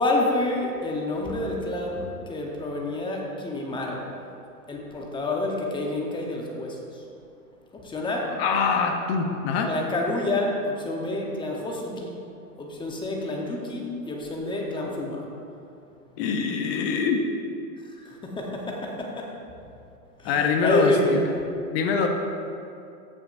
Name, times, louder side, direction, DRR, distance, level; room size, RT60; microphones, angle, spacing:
voice 1, 0.0-4.1 4.7-7.0 7.7-8.3 9.7-12.2 12.6-15.2 18.0-19.3 20.2-21.2, left 2 dB, 10° left, -1 dB, 1.0 m, -28 dB
voice 2, 8.4-9.7 16.2-17.3 20.2-21.3 21.7-22.1, left 5 dB, 40° left, 4 dB, 0.8 m, -24 dB
14.0 x 6.1 x 2.6 m, 2.7 s
hypercardioid pair, 130°, 46 cm